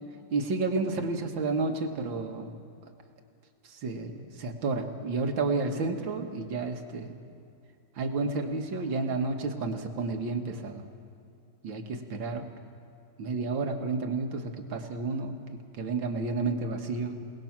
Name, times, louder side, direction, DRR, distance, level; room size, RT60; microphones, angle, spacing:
voice 1, 0.3-2.6 3.7-7.2 8.0-10.9 11.6-12.5 13.2-15.4 15.8-17.2, right 3 dB, 80° right, 4 dB, 2.3 m, -31 dB
28.5 x 19.0 x 6.0 m, 2.5 s
omnidirectional pair, 2.1 m